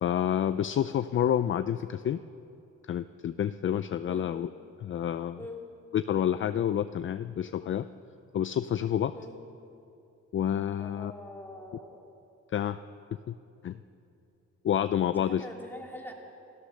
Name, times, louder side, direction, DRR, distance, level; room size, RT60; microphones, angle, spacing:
voice 1, 0.0-2.2 2.9-4.5 4.8-5.4 5.9-7.9 8.3-9.1 10.3-11.1 12.5-12.8 13.1-13.3 13.6-13.8 14.6-15.4, left 10 dB, 45° left, 11 dB, 0.4 m, -28 dB
voice 2, 10.8-12.1 15.1-16.1, left 1 dB, 5° left, -1 dB, 2.9 m, -43 dB
27.0 x 15.0 x 6.5 m, 2.7 s
wide cardioid pair, 150°, 29 cm